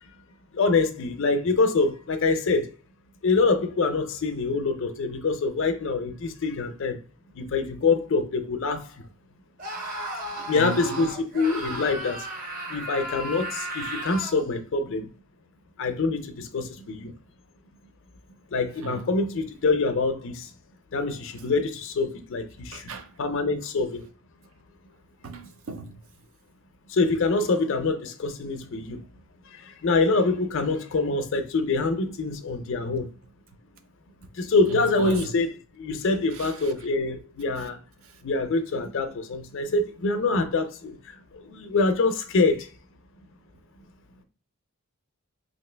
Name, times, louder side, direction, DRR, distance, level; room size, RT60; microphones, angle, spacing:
voice 1, 0.5-2.7 3.2-7.0 7.3-8.9 10.5-15.1 15.8-17.1 18.5-20.5 20.9-24.1 26.9-29.0 29.5-33.1 34.3-37.8 38.2-41.0 41.3-42.7, left 3 dB, 60° left, 0.5 m, -25 dB
Screaming, 9.6-14.4, right 1 dB, 40° right, 0.8 m, -34 dB
voice 2, 10.4-11.1 18.8-19.0 22.7-23.1 25.2-25.9 35.0-35.2 36.4-36.5, right 4 dB, 65° right, 0.5 m, -36 dB
2.9 x 2.7 x 3.3 m
head